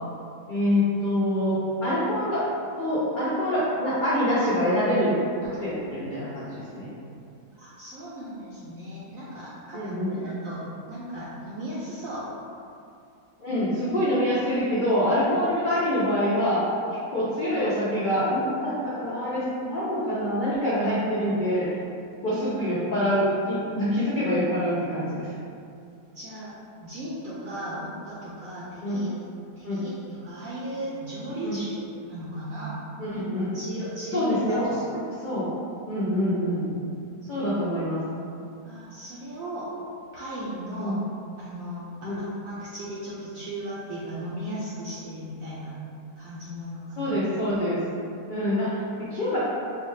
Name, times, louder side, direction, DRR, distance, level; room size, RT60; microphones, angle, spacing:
voice 1, 0.5-2.4 2.8-5.1 5.4-6.9 9.7-10.1 13.4-16.6 17.1-21.7 22.2-25.3 28.8-29.1 29.6-29.8 31.4-31.6 33.0-33.5 34.1-34.6 35.2-35.5 35.9-36.7 37.3-38.0 40.8-41.0 42.0-42.2 47.0-47.8 48.3-49.4, equal, 85° left, -10 dB, 0.4 m, -25 dB
voice 2, 7.5-9.8 10.1-12.2 26.1-26.5 26.8-29.1 29.6-32.7 33.1-34.7 38.6-39.7 40.1-41.0 41.4-45.7 46.2-47.1, equal, 70° right, -8 dB, 0.9 m, -36 dB
3.8 x 2.2 x 3.1 m, 2.5 s
omnidirectional pair, 1.7 m